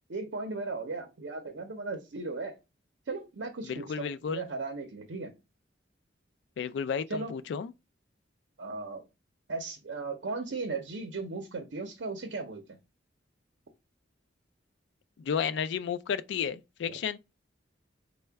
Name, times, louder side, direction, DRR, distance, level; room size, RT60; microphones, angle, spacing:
voice 1, 0.1-2.6 3.1-5.4 7.1-7.3 8.6-9.0 9.5-12.8 16.9-17.0, right 3 dB, 75° right, 0.6 m, -36 dB
voice 2, 3.6-4.5 6.6-7.7 15.2-17.2, left 7 dB, 65° left, 0.3 m, -32 dB
4.5 x 2.1 x 3.3 m
head